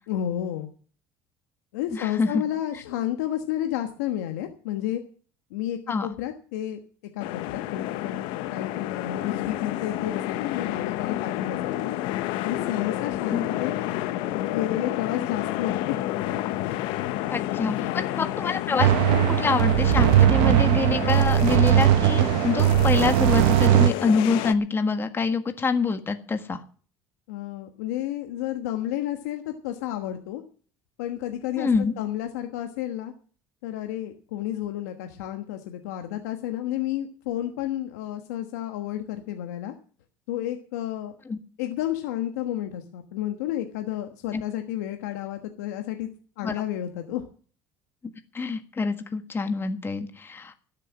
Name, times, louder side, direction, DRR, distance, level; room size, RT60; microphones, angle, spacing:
voice 1, 0.1-0.7 1.7-5.0 5.5-6.8 7.1-12.0 12.4-13.7 14.2-16.0 17.8-18.1 27.3-30.4 31.0-33.1 33.6-39.7 40.3-41.1 41.6-46.1 46.4-47.2, left 12 dB, 90° left, 5 dB, 1.3 m, -31 dB
voice 2, 1.9-2.4 5.9-6.1 13.3-13.4 17.3-18.9 19.3-26.6 31.6-31.9 41.3-41.4 44.3-44.4 46.4-46.5 48.3-50.5, left 4 dB, 25° left, 8 dB, 1.6 m, -26 dB
sound 1, 7.2-24.5, left 14 dB, 75° left, 0.9 m, -30 dB
sound 2, 18.8-23.9, right 12 dB, 75° right, 0.9 m, -19 dB
13.0 x 6.9 x 9.5 m, 0.43 s
supercardioid pair, 90°, 9 cm